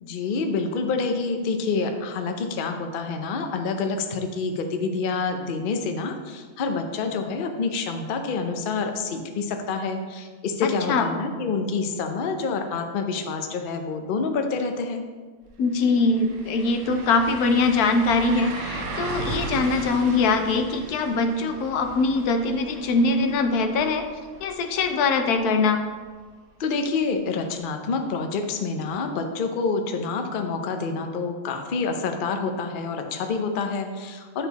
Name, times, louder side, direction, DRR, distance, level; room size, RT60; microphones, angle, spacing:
voice 1, 0.0-15.0 26.6-34.5, left 4 dB, 50° left, 5 dB, 0.6 m, -27 dB
voice 2, 10.6-11.1 15.6-24.1 24.4-25.8, left 3 dB, 85° left, 6 dB, 1.2 m, -22 dB
sound 1, 15.4-15.5 15.8-25.6 26.0-26.1 28.9-29.0, right 3 dB, 60° right, 1.2 m, -37 dB
9.0 x 4.3 x 4.0 m, 1.5 s
omnidirectional pair, 1.6 m